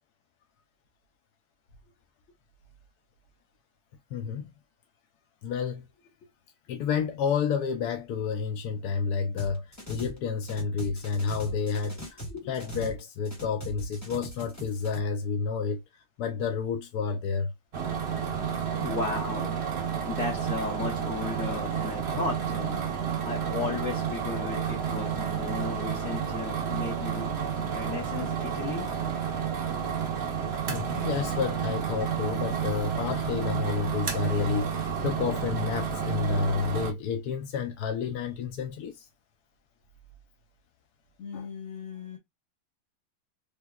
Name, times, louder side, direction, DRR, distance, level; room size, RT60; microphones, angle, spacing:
voice 1, 4.1-4.5 5.4-5.8 6.7-12.0 12.5-15.8 16.2-17.5 30.7-34.7 35.0-38.9 41.3-41.5, left 6 dB, 70° left, 0.9 m, -30 dB
sound 1, 9.4-10.2 10.4-13.0 13.2-15.0, right 1 dB, 10° left, 1.0 m, -40 dB
sound 2, 17.7-36.9, right 7 dB, 75° right, 0.5 m, -31 dB
voice 2, 18.7-19.5 20.1-22.8 23.2-27.3 27.6-28.9 41.2-42.2, left 4 dB, 45° left, 1.3 m, -35 dB
3.5 x 2.9 x 2.2 m
omnidirectional pair, 2.2 m